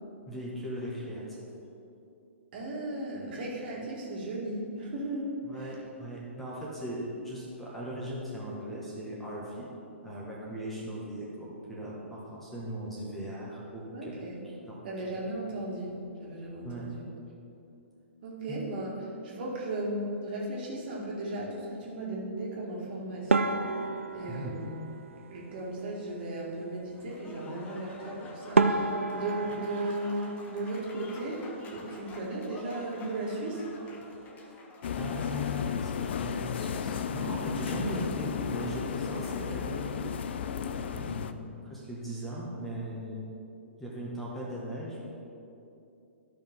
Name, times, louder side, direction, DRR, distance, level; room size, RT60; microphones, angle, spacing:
voice 1, 0.3-1.4 5.4-9.7 10.0-14.2 14.7-14.8 16.6-16.9 18.5-18.6 24.3-24.6 34.4-34.6 35.0-40.2 40.7-43.3 43.8-45.0, equal, 5° left, -7 dB, 1.6 m, -38 dB
voice 2, 2.5-5.7 13.9-14.4 14.8-17.0 18.2-18.9 19.2-23.8 24.1-33.6, right 1 dB, 50° right, -4 dB, 2.1 m, -36 dB
sound 1, 23.3-25.8 28.0-28.1 28.5-31.3 31.6-32.4 32.7-32.9 33.2-33.3 33.9-34.2, right 3 dB, 85° right, 0.4 m, -30 dB
Applause / Crowd, 27.0-35.8, left 2 dB, 20° left, 0.9 m, -49 dB
sound 2, 34.8-41.3, left 7 dB, 55° left, 0.4 m, -34 dB
12.5 x 5.7 x 3.7 m, 2.7 s
figure-of-eight pair, 120°, 7 cm